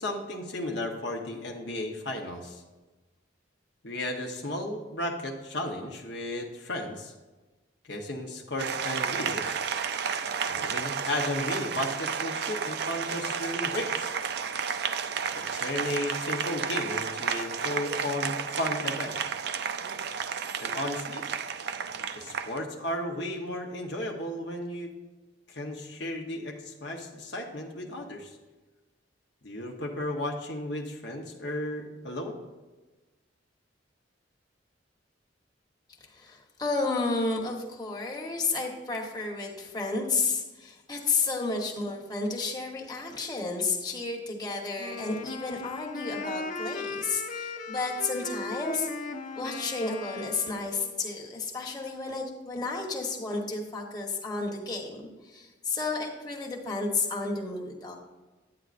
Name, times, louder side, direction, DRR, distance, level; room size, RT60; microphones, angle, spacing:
voice 1, 0.0-2.6 3.8-7.1 7.9-9.6 10.5-14.1 15.3-19.2 20.6-21.3 22.1-24.9 25.5-28.4 29.4-32.4, left 1 dB, 65° left, 1 dB, 0.9 m, -34 dB
Applause, 8.6-22.6, right 6 dB, 60° right, 0.4 m, -32 dB
voice 2, 36.1-48.9 49.4-58.0, left 3 dB, 20° left, -1 dB, 1.1 m, -32 dB
Wind instrument woodwind instrument, 44.8-51.0, left 3 dB, 40° left, 0.5 m, -37 dB
9.5 x 9.1 x 2.5 m, 1.2 s
head